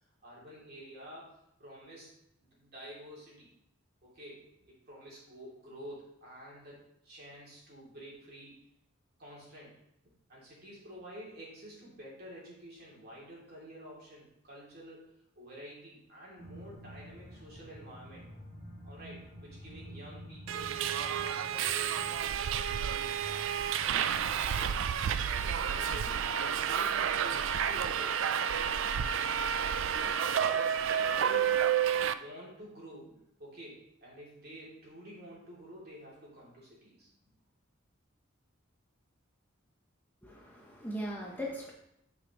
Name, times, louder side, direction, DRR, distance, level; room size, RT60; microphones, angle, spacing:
voice 1, 0.2-2.1 2.5-3.5 4.0-8.6 9.2-9.8 10.3-18.2 18.8-23.5 24.6-24.8 25.4-26.3 26.6-28.8 30.9-31.6 32.0-37.1, equal, 50° right, -5 dB, 2.7 m, -50 dB
sound 1, 16.3-26.4, equal, 40° left, 2.1 m, -50 dB
Subway metro underground, 20.5-32.1, right 8 dB, 70° right, 0.3 m, -30 dB
voice 2, 40.2-41.7, equal, 10° left, -2 dB, 0.8 m, -39 dB
9.2 x 5.1 x 3.0 m, 0.77 s
head